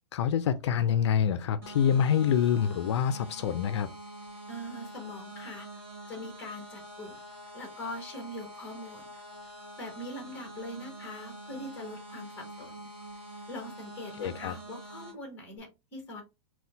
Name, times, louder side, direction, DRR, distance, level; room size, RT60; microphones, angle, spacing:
voice 1, 0.0-3.9 14.2-14.5, left 8 dB, 70° left, 0.4 m, -26 dB
sound 1, 1.6-15.1, right 1 dB, 20° right, 1.8 m, -46 dB
voice 2, 4.5-5.7 6.1-7.2 7.5-9.1 9.8-12.9 13.5-16.2, left 1 dB, 10° left, 1.3 m, -42 dB
4.2 x 2.2 x 3.8 m
supercardioid pair, 180°, 15 cm